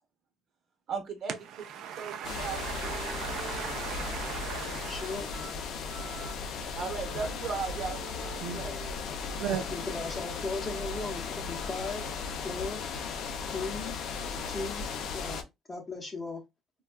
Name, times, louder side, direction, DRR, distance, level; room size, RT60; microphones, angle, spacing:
voice 1, 0.9-1.7 2.0-3.0 6.7-8.8, right 5 dB, 45° right, 0.7 m, -37 dB
Wind instrument woodwind instrument, 1.7-10.1, right 6 dB, 85° right, 0.8 m, -49 dB
voice 2, 1.8-5.2 8.4-8.6 9.4-9.6, right 9 dB, 70° right, 0.3 m, -37 dB
sound 1, 2.2-15.4, left 5 dB, 60° left, 0.5 m, -36 dB
voice 3, 4.9-5.3 9.7-12.1 12.4-12.8 13.5-14.0 14.5-15.4 15.7-16.4, left 3 dB, 20° left, 0.8 m, -37 dB
3.4 x 2.3 x 2.2 m
cardioid pair, 155°, 0 cm